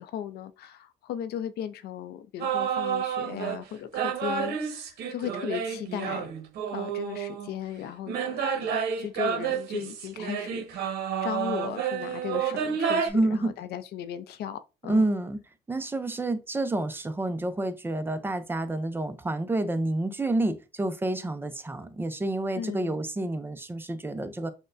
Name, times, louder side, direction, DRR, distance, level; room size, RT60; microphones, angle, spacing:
voice 1, 0.0-6.3 6.7-10.9 11.2-15.1 22.6-23.0, left 10 dB, 70° left, 0.5 m, -37 dB
sound 1, 2.4-3.6 3.9-7.5 8.1-13.1, right 7 dB, 70° right, 0.9 m, -30 dB
voice 2, 13.1-13.5 14.9-15.4 15.7-24.5, right 2 dB, 15° right, 0.4 m, -29 dB
6.3 x 2.1 x 2.5 m
cardioid pair, 110°, 17 cm